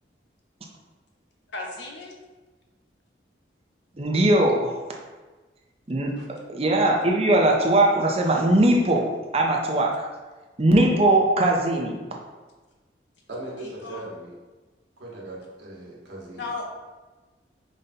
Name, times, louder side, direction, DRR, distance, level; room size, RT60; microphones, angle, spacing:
voice 1, 1.5-2.1 13.5-14.0 16.3-16.7, left 3 dB, 70° left, 0 dB, 0.8 m, -35 dB
voice 2, 4.0-4.7 5.9-6.1 6.5-10.1 10.6-12.0, right 1 dB, 30° right, 0 dB, 0.5 m, -20 dB
voice 3, 13.3-14.3 15.0-16.5, right 1 dB, 70° right, -4 dB, 1.1 m, -39 dB
5.2 x 2.2 x 4.0 m, 1.2 s
head